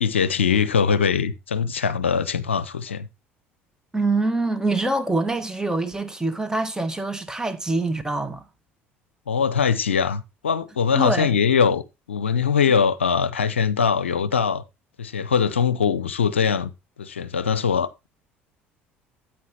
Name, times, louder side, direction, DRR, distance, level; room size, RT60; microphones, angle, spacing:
voice 1, 0.0-3.1 9.3-11.8 12.1-14.6 15.0-16.7 17.0-18.1, left 6 dB, 90° left, 0.5 m, -22 dB
voice 2, 3.9-8.4 11.0-11.4, right 2 dB, 10° right, 1.7 m, -25 dB
9.4 x 8.7 x 3.0 m
hypercardioid pair, 60°, 6 cm